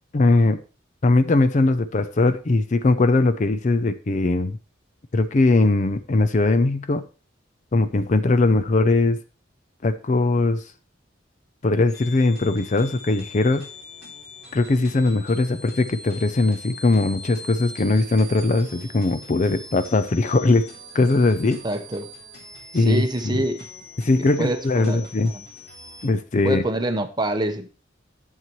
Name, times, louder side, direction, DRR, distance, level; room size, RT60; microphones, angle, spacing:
voice 1, 0.1-0.6 1.0-4.6 5.1-7.0 7.7-9.2 9.8-10.6 11.6-13.7 14.5-20.7 20.9-21.6 22.7-23.4 24.0-25.3 26.0-26.6, left 2 dB, 40° left, 0.5 m, -20 dB
sound 1, 11.9-26.0, left 1 dB, 55° left, 2.9 m, -42 dB
voice 2, 21.6-22.1 22.7-23.7 24.2-25.0 25.3-25.4 26.4-27.7, right 1 dB, 20° right, 0.9 m, -26 dB
11.0 x 7.4 x 3.1 m
head